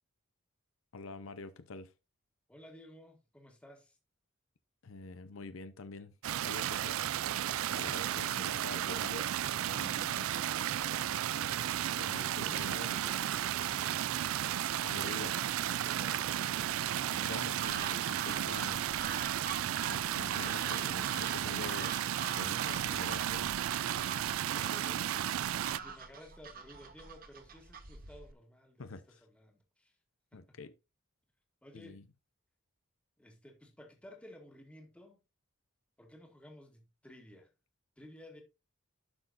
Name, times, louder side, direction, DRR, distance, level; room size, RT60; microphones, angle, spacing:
voice 1, 0.9-1.9 4.8-6.2 6.4-7.1 7.7-9.3 9.7-10.3 11.9-13.0 14.8-15.3 17.1-18.8 19.8-21.9 22.3-23.5 28.8-29.0 30.3-30.7 31.7-32.0, left 3 dB, 65° left, 0.6 m, -46 dB
voice 2, 2.5-4.0 12.0-14.0 14.8-16.9 19.2-20.2 20.4-20.5 21.6-22.1 23.9-30.0 30.3-30.6 31.6-32.0 33.2-35.2 36.0-37.5 38.0-38.4, left 1 dB, 5° left, 1.8 m, -55 dB
sound 1, 6.2-25.8, right 11 dB, 70° right, 0.3 m, -34 dB
sound 2, 17.6-28.3, right 6 dB, 40° right, 1.0 m, -45 dB
11.5 x 6.2 x 2.6 m
head